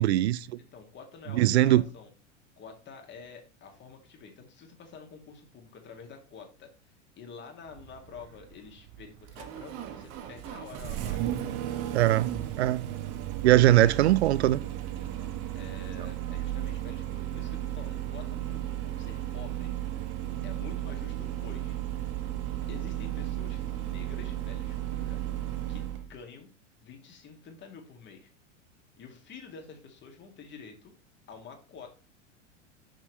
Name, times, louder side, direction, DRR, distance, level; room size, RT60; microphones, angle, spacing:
voice 1, 0.0-0.4 1.3-1.8 11.9-12.3 12.6-12.9 13.4-14.6, right 14 dB, 60° right, 0.5 m, -21 dB
voice 2, 0.6-2.1 2.6-11.3 13.6-14.1 15.0-19.7 20.4-21.8 22.7-25.2 25.7-26.5 26.8-28.3 29.0-30.9 31.3-32.0, left 5 dB, 30° left, 2.1 m, -48 dB
Engine starting, 7.7-26.1, right 12 dB, 40° right, 1.0 m, -35 dB
6.2 x 6.1 x 3.0 m
figure-of-eight pair, 85°, 37 cm